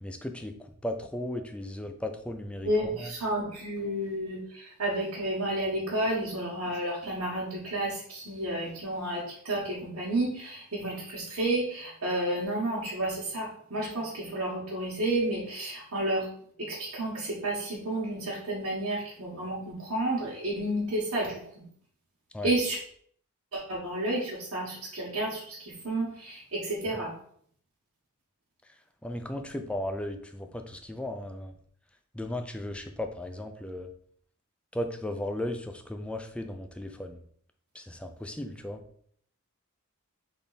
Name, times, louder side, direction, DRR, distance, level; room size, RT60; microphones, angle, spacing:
voice 1, 0.0-0.5 0.8-2.7 3.0-3.1 22.3-22.5 29.0-31.5 32.1-33.9 34.7-37.2 37.7-38.8, left 1 dB, 5° left, 6 dB, 0.4 m, -36 dB
voice 2, 2.6-16.3 16.6-21.6 22.4-22.8 23.5-27.1, right 1 dB, 70° right, -7 dB, 1.3 m, -31 dB
3.6 x 3.4 x 4.0 m, 0.62 s
head